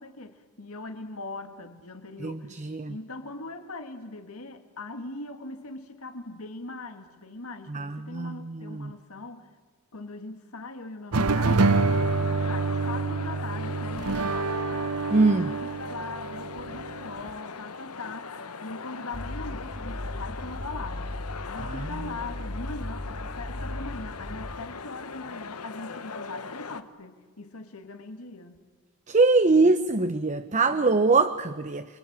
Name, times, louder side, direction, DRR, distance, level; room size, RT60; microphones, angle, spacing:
voice 1, 0.0-2.5 2.9-9.5 9.9-14.5 15.2-28.6 29.5-29.7 30.0-30.1 30.5-31.1, left 3 dB, 70° left, 2.0 m, -41 dB
voice 2, 2.2-3.0 7.7-8.9 15.1-15.5 29.1-31.9, right 3 dB, 35° right, 0.8 m, -23 dB
sound 1, 11.1-17.3, right 3 dB, 75° right, 0.9 m, -27 dB
sound 2, 11.6-26.8, left 5 dB, 90° left, 1.2 m, -40 dB
sound 3, 19.1-24.6, left 1 dB, 35° left, 1.7 m, -37 dB
28.5 x 23.0 x 8.8 m
head